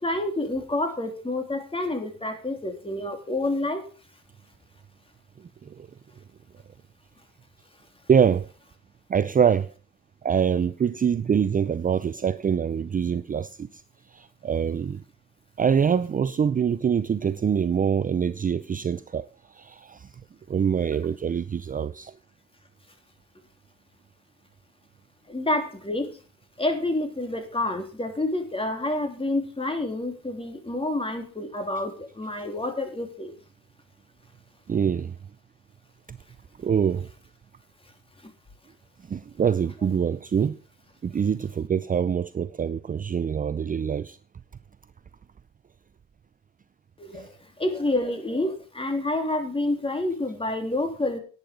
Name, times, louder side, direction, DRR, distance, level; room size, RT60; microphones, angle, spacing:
voice 1, 0.0-3.8 25.3-26.1 26.6-33.3 47.0-47.3 47.6-51.2, left 2 dB, 20° left, 3.1 m, -28 dB
voice 2, 8.1-8.5 9.1-9.7 10.2-13.8 14.1-15.0 15.6-20.1 20.5-22.1 34.7-35.1 36.1-36.2 36.6-37.1 39.1-40.6 41.0-44.2 47.1-47.3, right 7 dB, 30° right, 0.5 m, -25 dB
11.0 x 9.8 x 5.1 m
cardioid pair, 90°, 30 cm